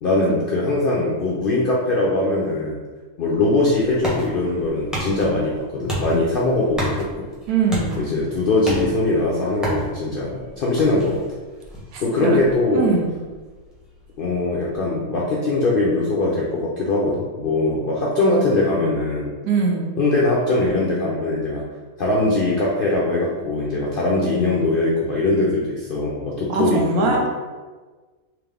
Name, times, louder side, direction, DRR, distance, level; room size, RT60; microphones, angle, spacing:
voice 1, 0.0-2.8 3.2-7.1 8.0-11.2 12.0-12.9 14.2-19.3 20.0-21.7 22.0-27.2, left 2 dB, 70° left, -4 dB, 0.5 m, -21 dB
sound 1, 3.3-14.8, equal, ahead, 0.7 m, -33 dB
voice 2, 7.5-8.0 11.9-12.4 12.7-13.1 19.4-19.9 26.5-27.3, right 4 dB, 85° right, 0 dB, 1.2 m, -21 dB
3.7 x 2.9 x 3.3 m, 1.3 s
omnidirectional pair, 1.6 m